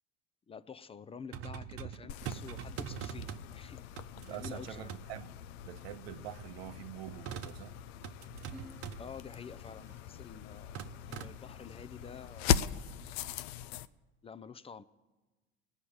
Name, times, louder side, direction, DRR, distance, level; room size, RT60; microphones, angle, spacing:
voice 1, 0.5-3.8 4.3-4.9 9.0-10.8 11.1-12.5 14.2-14.8, left 6 dB, 20° left, 0.4 m, -48 dB
sound 1, 1.3-3.5 4.0-4.6 4.9-5.0 7.1-7.6 8.0-9.1 9.7-10.0 10.8-11.3, right 8 dB, 50° right, 0.8 m, -42 dB
sound 2, 2.1-13.9, left 9 dB, 85° left, 0.5 m, -39 dB
voice 2, 4.2-5.3 5.6-7.8, right 12 dB, 85° right, 0.7 m, -45 dB
Acoustic guitar / Strum, 8.5-11.4, equal, 5° right, 1.2 m, -57 dB
19.0 x 6.4 x 8.6 m
supercardioid pair, 85°, 30 cm